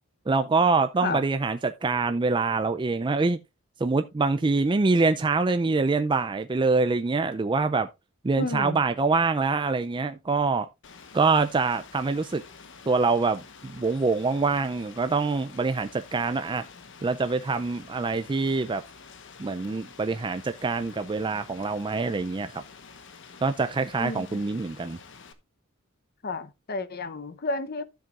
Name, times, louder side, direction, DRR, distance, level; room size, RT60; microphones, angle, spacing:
voice 1, 0.3-3.4 3.8-7.9 8.2-10.7 11.1-12.4 12.9-16.6 17.0-18.8 19.4-22.6 23.4-25.0, right 3 dB, 25° right, 0.4 m, -25 dB
voice 2, 8.4-8.8 24.0-24.4 26.2-27.8, left 3 dB, 50° left, 0.8 m, -31 dB
Rain, 10.8-25.3, left 5 dB, 65° left, 1.2 m, -48 dB
12.5 x 7.5 x 2.4 m
head